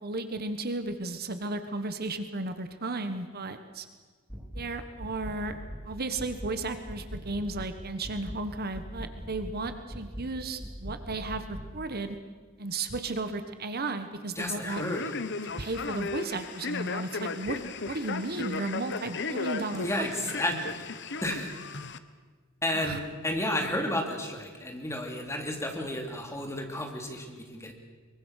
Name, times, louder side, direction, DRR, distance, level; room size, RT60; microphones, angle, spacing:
voice 1, 0.0-3.9 4.5-5.5 5.8-12.2 12.6-14.8 15.4-17.6 17.9-20.3 22.7-23.0, right 2 dB, 50° right, 9 dB, 1.4 m, -34 dB
sound 1, 4.3-4.7 5.0-5.9 6.2-6.6 6.9-7.7 8.0-8.4 8.7-9.6 9.9-10.3 10.6-11.7, equal, 10° right, 3.5 m, -40 dB
voice 2, 14.4-15.1 19.8-20.9 21.2-21.5 22.6-27.7, left 1 dB, 15° left, 3 dB, 2.9 m, -32 dB
Male speech man speaking, 14.7-22.0, left 4 dB, 55° left, 1.1 m, -35 dB
24.0 x 22.5 x 6.5 m, 1.5 s
head